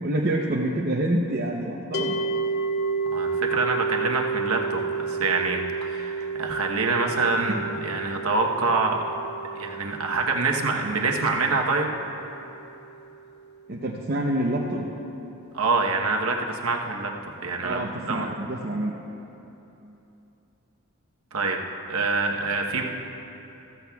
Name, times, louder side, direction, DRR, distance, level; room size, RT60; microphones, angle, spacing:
voice 1, 0.0-2.2 7.4-7.5 13.7-14.9 17.6-18.9, right 1 dB, 45° right, -2 dB, 0.7 m, -27 dB
sound 1, 1.9-13.1, right 4 dB, 50° left, 0.6 m, -31 dB
voice 2, 3.1-9.0 9.6-11.9 15.5-18.3 21.3-21.6 21.9-22.8, right 3 dB, 75° right, 1 dB, 1.0 m, -26 dB
14.5 x 14.0 x 2.3 m, 3.0 s
head